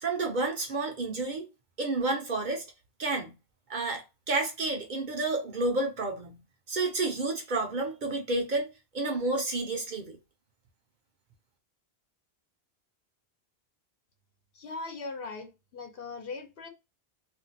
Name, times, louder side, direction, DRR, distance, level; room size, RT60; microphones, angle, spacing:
voice 1, 0.0-1.5 1.8-2.6 3.0-3.3 3.7-6.4 6.7-8.7 8.9-10.2, right 2 dB, 55° right, 0.7 m, -30 dB
voice 2, 14.6-15.5 15.7-16.7, left 3 dB, 65° left, 0.9 m, -39 dB
2.5 x 2.1 x 4.0 m
omnidirectional pair, 1.1 m